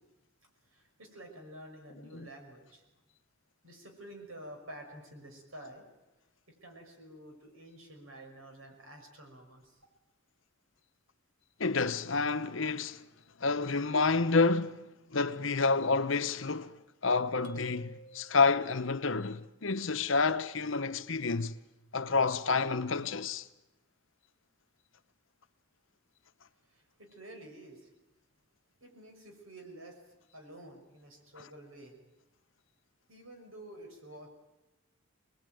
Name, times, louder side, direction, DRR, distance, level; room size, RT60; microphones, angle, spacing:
voice 1, 0.7-2.9 3.6-5.9 6.6-9.8 26.6-27.9 28.8-31.9 33.1-34.3, right 1 dB, 80° right, 6.0 m, -50 dB
voice 2, 11.6-13.0 13.4-16.8 17.0-21.6 21.9-23.5, left 4 dB, 70° left, 1.0 m, -29 dB
sound 1, 17.4-19.0, right 5 dB, 40° right, 2.1 m, -51 dB
25.5 x 20.5 x 9.3 m
head